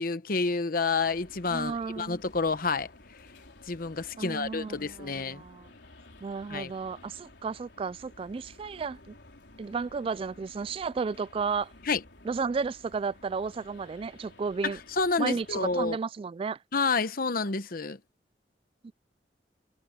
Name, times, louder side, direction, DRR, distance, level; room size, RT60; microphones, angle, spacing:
voice 1, 0.0-2.9 3.7-5.4 6.5-6.7 11.8-12.0 14.6-16.0 16.7-18.0, left 4 dB, 55° left, 1.0 m, -29 dB
sound 1, 1.0-15.9, left 2 dB, 85° left, 4.1 m, -53 dB
voice 2, 1.5-2.2 4.2-5.7 6.2-9.1 9.6-11.7 12.3-14.8 15.2-16.6 18.8-18.9, right 5 dB, 30° right, 0.3 m, -33 dB
head